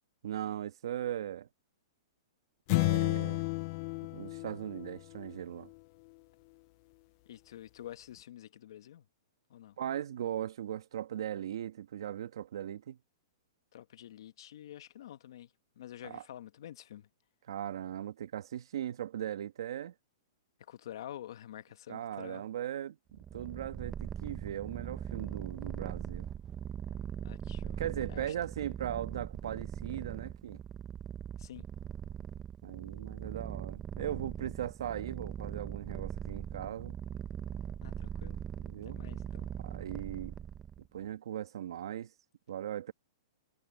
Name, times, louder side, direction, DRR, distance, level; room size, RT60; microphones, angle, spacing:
voice 1, 0.2-1.5 2.7-3.5 4.1-5.7 9.8-13.0 16.0-16.2 17.5-19.9 21.9-26.3 27.8-30.6 32.6-37.0 38.7-39.0 39.6-40.3 40.9-42.1 42.5-42.9, right 10 dB, 70° right, 1.5 m, -39 dB
sound 1, 2.7-5.3, left 26 dB, 40° left, 0.3 m, -32 dB
voice 2, 7.3-9.0 9.5-9.7 13.7-17.1 20.6-22.4 27.2-27.8 28.1-28.3 31.4-31.7 37.8-38.4 38.8-39.5, left 11 dB, 65° left, 1.3 m, -48 dB
Purr, 23.1-40.9, right 9 dB, 15° right, 0.8 m, -41 dB
hypercardioid pair, 155°, 3 cm